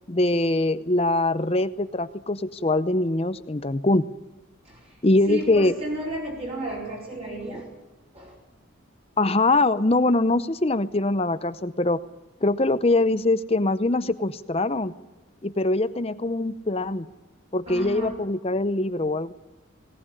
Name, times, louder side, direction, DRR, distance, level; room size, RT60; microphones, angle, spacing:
voice 1, 0.1-4.1 5.0-5.7 9.2-12.0 12.4-14.9 15.4-17.1 17.5-19.3, left 2 dB, 30° left, 13 dB, 0.7 m, -23 dB
voice 2, 5.3-7.7 8.1-8.3 17.7-18.1, right 1 dB, 30° right, -3 dB, 4.5 m, -33 dB
19.5 x 19.0 x 9.9 m, 1.0 s
head